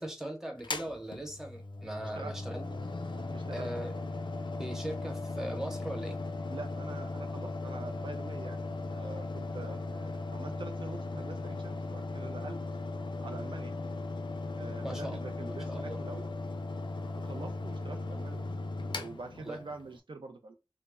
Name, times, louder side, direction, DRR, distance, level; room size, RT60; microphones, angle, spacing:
voice 1, 0.0-2.7 3.5-3.9 4.6-6.2 14.8-15.2 15.7-16.0 19.4-19.6, right 1 dB, 5° right, 0.8 m, -39 dB
Mechanical fan, 0.6-20.0, left 2 dB, 65° left, 0.4 m, -38 dB
voice 2, 3.3-3.7 6.5-8.6 8.9-12.6 13.2-13.8 14.5-16.3 17.1-18.5 18.9-20.5, right 3 dB, 75° right, 0.4 m, -45 dB
2.1 x 2.0 x 3.4 m
wide cardioid pair, 45°, 9 cm